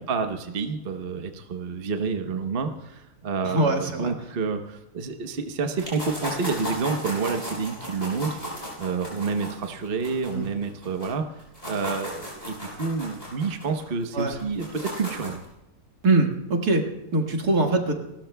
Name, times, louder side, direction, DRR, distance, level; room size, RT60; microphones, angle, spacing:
voice 1, 0.0-11.2 11.7-15.4, right 5 dB, 40° right, 5 dB, 1.1 m, -29 dB
voice 2, 3.4-4.1 10.3-10.5 14.1-14.4 16.0-16.8 17.1-17.9, right 2 dB, 70° right, 2 dB, 2.3 m, -22 dB
sound 1, 5.8-11.1 11.4-15.5, equal, 25° left, 7.1 m, -36 dB
29.0 x 14.0 x 2.3 m, 0.92 s
omnidirectional pair, 1.7 m